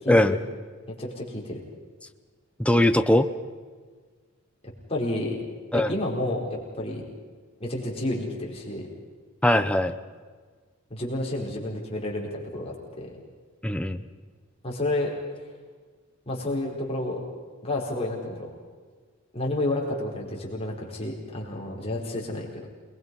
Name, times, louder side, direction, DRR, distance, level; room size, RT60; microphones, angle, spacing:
voice 1, 0.0-0.4 0.9-1.6 4.9-5.4 5.7-7.1 7.6-8.9 10.9-13.1 14.6-15.1 16.3-17.2 17.6-18.6 19.3-22.7, left 1 dB, 25° left, -2 dB, 4.6 m, -30 dB
voice 2, 2.6-3.3 5.7-5.9 9.4-9.9 13.6-14.0, left 1 dB, 5° left, 8 dB, 0.7 m, -20 dB
28.0 x 21.0 x 5.5 m, 1.5 s
head